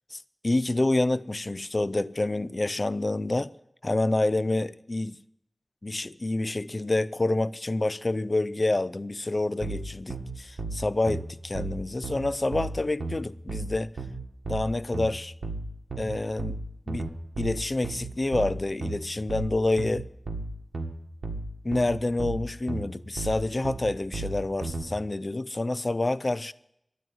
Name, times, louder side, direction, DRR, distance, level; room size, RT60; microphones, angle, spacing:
voice 1, 0.1-3.5 3.8-5.2 5.8-13.9 14.5-15.3 16.0-16.6 16.9-17.1 17.4-20.1 21.6-26.5, left 2 dB, 45° left, 0.4 m, -28 dB
sound 1, 9.6-24.9, right 2 dB, 85° right, 1.7 m, -34 dB
12.5 x 9.2 x 9.3 m
wide cardioid pair, 60°, 0 cm